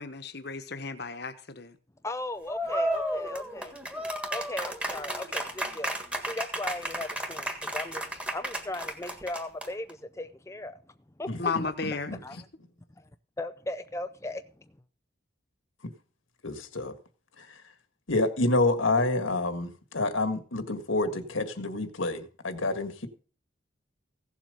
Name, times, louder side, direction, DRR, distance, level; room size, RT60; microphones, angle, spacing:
voice 1, 0.0-1.8 11.4-12.1, left 4 dB, 55° left, 1.2 m, -33 dB
voice 2, 2.0-3.7 4.3-5.9 6.2-8.0 8.3-10.8 11.2-11.5 12.1-12.4 13.0-13.1 13.4-14.4, left 2 dB, 15° left, 0.5 m, -37 dB
sound 1, 2.5-9.9, right 1 dB, 5° right, 1.6 m, -33 dB
voice 3, 11.3-12.2 15.8-15.9 16.4-17.0 17.4-17.5 18.1-23.1, left 2 dB, 80° left, 1.8 m, -28 dB
16.5 x 7.4 x 5.4 m
head